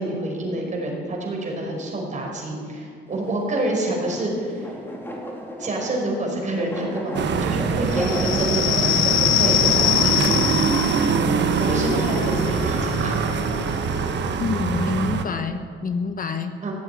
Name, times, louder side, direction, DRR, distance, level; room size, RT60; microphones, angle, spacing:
voice 1, 0.0-4.8 5.6-10.3 11.2-13.2 16.6-16.7, right 1 dB, 40° right, 0 dB, 5.1 m, -27 dB
sound 1, 3.1-10.0, equal, 10° left, 3.9 m, -34 dB
sound 2, 7.1-15.2, right 6 dB, 65° right, 1.3 m, -23 dB
sound 3, 7.9-15.2, left 13 dB, 80° left, 0.6 m, -25 dB
voice 2, 14.4-16.6, left 4 dB, 45° left, 8 dB, 1.1 m, -27 dB
16.5 x 8.1 x 9.6 m, 2.2 s
cardioid pair, 90°, 20 cm